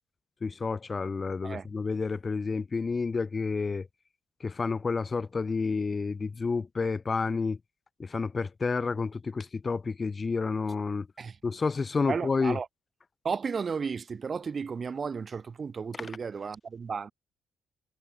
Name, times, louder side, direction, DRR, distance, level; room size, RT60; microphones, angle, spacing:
voice 1, 0.4-3.9 4.4-7.6 8.0-11.1 11.4-12.6 16.0-16.1, left 4 dB, 30° left, 1.9 m, -30 dB
voice 2, 12.1-12.7 13.2-17.1, right 5 dB, 40° right, 6.3 m, -33 dB
cardioid pair, 90°, 0 cm